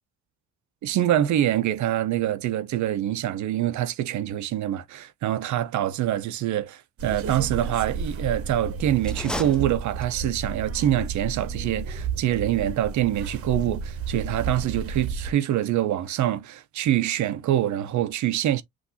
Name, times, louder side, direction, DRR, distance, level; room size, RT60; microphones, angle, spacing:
voice 1, 0.8-18.6, right 12 dB, 70° right, 0.7 m, -25 dB
sound 1, 7.0-15.3, right 5 dB, 50° right, 0.9 m, -32 dB
sound 2, 9.0-10.4, left 1 dB, 5° left, 0.6 m, -35 dB
6.1 x 2.6 x 2.7 m
cardioid pair, 90°, 30 cm